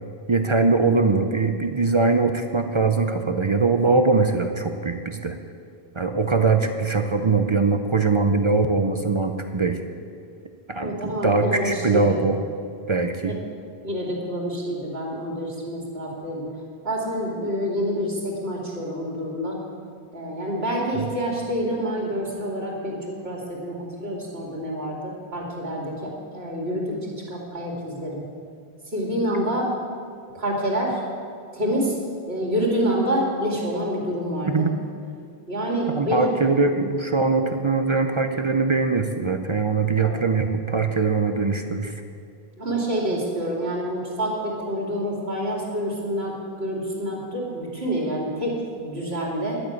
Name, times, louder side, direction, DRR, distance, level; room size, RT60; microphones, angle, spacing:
voice 1, 0.3-5.4 6.0-9.8 10.7-12.4 12.9-13.4 34.5-34.7 35.9-41.9, right 3 dB, 40° right, 7 dB, 0.5 m, -22 dB
voice 2, 10.8-12.2 13.2-13.4 13.8-16.5 16.8-19.6 20.1-28.2 28.9-29.7 30.3-31.0 31.5-32.0 32.3-34.7 35.5-36.3 40.0-40.2 42.6-49.6, equal, 75° right, -2 dB, 2.9 m, -27 dB
11.5 x 6.5 x 8.8 m, 2.3 s
omnidirectional pair, 1.1 m